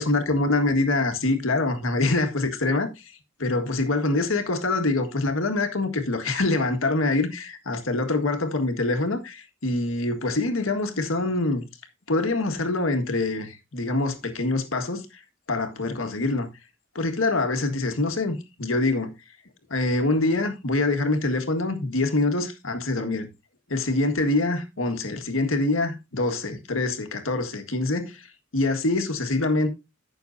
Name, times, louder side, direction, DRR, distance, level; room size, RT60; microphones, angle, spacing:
voice 1, 0.0-3.1 3.4-11.6 12.1-15.2 15.5-16.5 16.9-19.1 19.7-23.3 23.7-28.3 28.5-29.7, left 2 dB, 90° left, 1.7 m, -25 dB
15.0 x 6.4 x 2.7 m
head